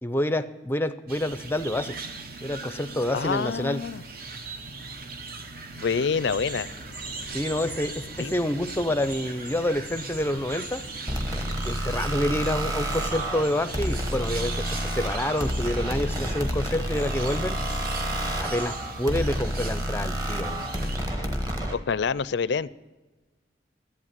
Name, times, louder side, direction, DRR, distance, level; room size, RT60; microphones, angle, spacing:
voice 1, 0.0-2.0 2.4-3.8 7.3-10.8 11.6-17.6 18.4-20.6, left 1 dB, 10° left, 11 dB, 0.5 m, -28 dB
sound 1, 1.1-21.0, right 3 dB, 50° right, 0.9 m, -39 dB
voice 2, 3.1-4.0 5.8-6.7 8.2-8.3 21.7-22.7, left 5 dB, 65° left, 18 dB, 0.4 m, -27 dB
sound 2, 6.2-18.9, right 1 dB, 85° right, 4.4 m, -44 dB
sound 3, 11.1-21.8, equal, 20° right, 1.3 m, -29 dB
11.0 x 8.2 x 7.4 m, 1.2 s
head